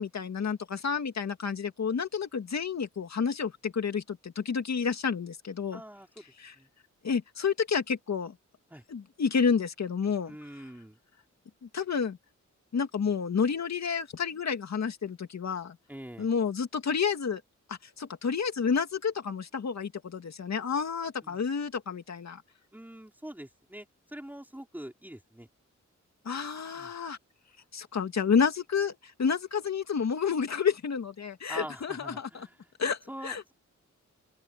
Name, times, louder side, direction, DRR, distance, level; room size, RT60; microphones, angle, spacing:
voice 1, 0.0-5.8 6.4-6.5 7.0-8.3 8.9-10.3 11.7-12.2 12.7-15.8 16.2-17.4 17.7-22.4 26.3-27.2 27.7-32.5 32.8-33.4, left 6 dB, 65° left, 2.4 m, -30 dB
voice 2, 5.7-6.2 6.5-6.7 8.7-8.8 10.3-11.0 15.9-16.3 21.2-21.4 22.7-25.5 26.7-26.9 31.5-32.7 33.1-33.5, right 1 dB, 5° right, 4.5 m, -44 dB
open air
wide cardioid pair, 105°, 29 cm